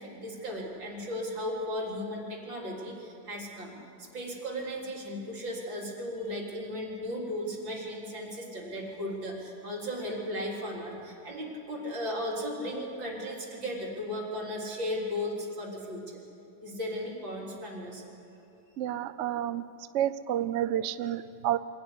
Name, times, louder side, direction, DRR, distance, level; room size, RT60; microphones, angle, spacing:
voice 1, 0.0-16.2 16.6-18.1 21.0-21.1, left 1 dB, 80° right, -2 dB, 4.5 m, -36 dB
voice 2, 18.8-19.6 19.9-21.6, right 11 dB, 65° right, 13 dB, 0.7 m, -29 dB
24.5 x 17.0 x 9.8 m, 2.9 s
omnidirectional pair, 2.0 m